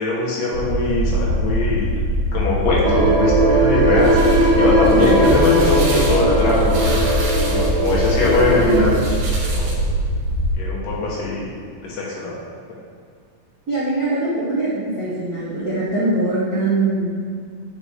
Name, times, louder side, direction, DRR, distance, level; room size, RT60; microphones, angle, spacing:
voice 1, 0.0-1.8 2.3-9.7 10.6-11.5 11.8-12.3, left 3 dB, 70° left, -5 dB, 3.1 m, -21 dB
sound 1, 0.5-10.5, right 1 dB, 45° left, 2.2 m, -22 dB
sound 2, 2.8-8.8, right 2 dB, 20° right, 1.4 m, -19 dB
sound 3, 3.7-9.9, right 2 dB, 60° right, 2.6 m, -33 dB
voice 2, 13.7-17.1, right 2 dB, 80° right, -10 dB, 0.8 m, -22 dB
9.2 x 6.1 x 3.7 m, 2.1 s
omnidirectional pair, 4.0 m